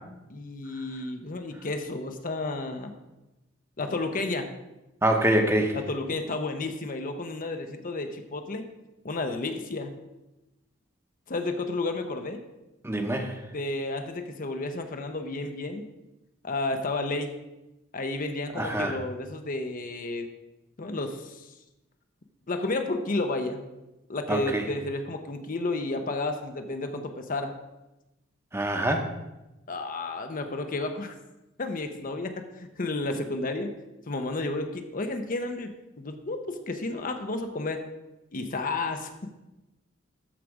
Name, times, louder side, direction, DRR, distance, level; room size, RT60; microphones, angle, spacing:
voice 1, 0.3-2.9 3.8-4.5 5.7-8.7 9.0-9.9 11.3-12.4 13.5-15.9 16.4-17.4 17.9-20.3 20.8-21.5 22.5-23.6 24.1-27.5 29.7-31.1 31.6-33.7 34.1-35.7 36.0-37.8 38.3-39.1, left 2 dB, 40° left, 6 dB, 0.7 m, -31 dB
voice 2, 5.0-5.7 12.8-13.3 18.6-19.0 24.3-24.7 28.5-29.1, right 1 dB, 10° right, 4 dB, 0.9 m, -25 dB
13.5 x 4.9 x 4.8 m, 0.99 s
head